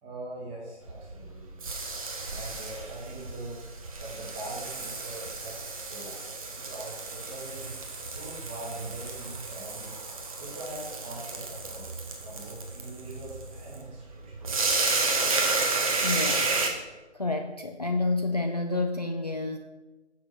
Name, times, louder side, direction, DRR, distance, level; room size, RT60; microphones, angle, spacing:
voice 1, 0.0-1.7 2.3-3.6 4.0-6.3 6.6-7.7 8.1-10.0 10.4-14.6, right 2 dB, 10° right, -4 dB, 1.3 m, -42 dB
sound 1, 0.8-16.7, right 3 dB, 30° right, 1.0 m, -32 dB
voice 2, 16.0-16.5 17.1-19.6, left 3 dB, 35° left, 4 dB, 0.4 m, -29 dB
7.0 x 6.1 x 6.1 m, 1.2 s
figure-of-eight pair, 155°, 35 cm